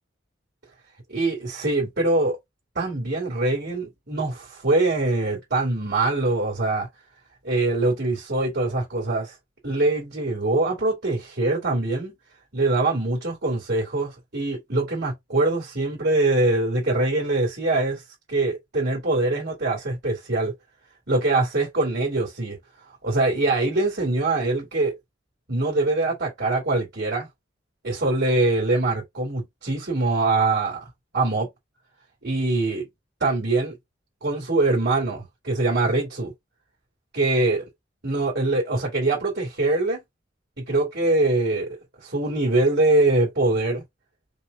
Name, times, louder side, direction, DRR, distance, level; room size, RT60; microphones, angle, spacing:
voice 1, 1.1-2.4 2.7-6.9 7.4-9.3 9.6-12.1 12.5-18.0 18.3-20.5 21.1-22.6 23.0-24.9 25.5-27.3 27.8-30.9 31.1-31.5 32.2-32.9 33.2-33.8 34.2-36.3 37.1-37.6 38.0-40.0 40.6-43.8, right 2 dB, 55° right, 2.9 m, -23 dB
5.4 x 3.5 x 2.6 m
head